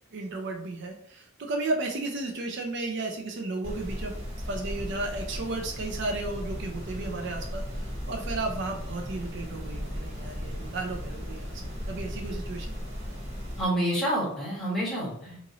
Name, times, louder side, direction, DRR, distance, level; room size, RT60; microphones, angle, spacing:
voice 1, 0.1-4.1 4.4-11.5 11.9-12.7, right 2 dB, 55° right, 3 dB, 0.5 m, -34 dB
sound 1, 3.6-13.6, equal, 30° right, 1.3 m, -36 dB
sound 2, 6.3-12.2, equal, 30° left, 0.8 m, -48 dB
voice 2, 13.6-15.5, right 1 dB, ahead, -9 dB, 1.4 m, -28 dB
3.0 x 2.5 x 3.8 m, 0.68 s
head